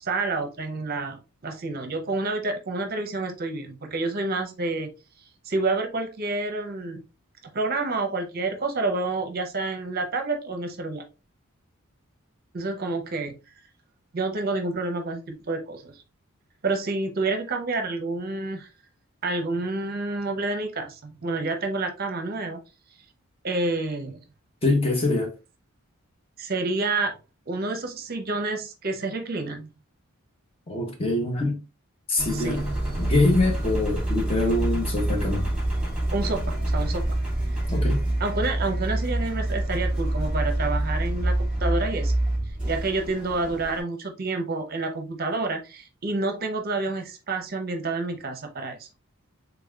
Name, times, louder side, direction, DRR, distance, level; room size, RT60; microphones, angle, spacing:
voice 1, 0.0-4.9 5.4-7.0 7.5-11.0 12.5-13.3 14.1-15.9 16.6-18.7 19.2-22.6 23.4-24.2 26.4-27.2 27.5-29.7 32.3-32.7 36.1-37.2 38.2-42.1 42.7-48.9, right 3 dB, 45° right, 0.6 m, -29 dB
voice 2, 24.6-25.3 30.7-31.6 32.1-32.6 33.0-35.5 37.7-38.0, left 2 dB, 25° left, 0.8 m, -24 dB
Engine, 32.2-43.8, right 1 dB, 5° right, 1.9 m, -26 dB
4.0 x 3.4 x 2.3 m
head